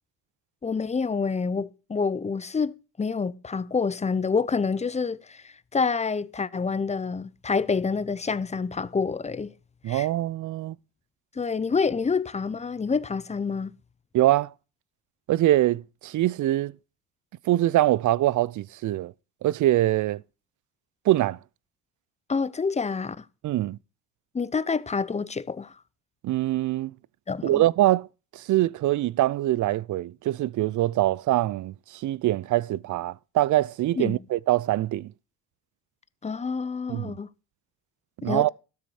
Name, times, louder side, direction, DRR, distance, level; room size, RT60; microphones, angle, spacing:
voice 1, 0.6-5.4 5.7-9.5 9.9-10.1 11.4-13.7 22.3-23.2 24.3-25.7 27.3-27.6 34.0-34.2 36.2-37.3 38.2-38.5, left 5 dB, 15° left, 0.6 m, -27 dB
voice 2, 9.8-10.8 14.1-14.5 15.3-16.7 17.5-19.1 19.4-20.2 21.1-21.4 23.4-23.8 26.2-26.9 27.4-28.1 28.3-35.1 36.9-37.1 38.2-38.5, right 15 dB, 45° right, 0.5 m, -23 dB
13.0 x 6.7 x 4.9 m
supercardioid pair, 80°, 42 cm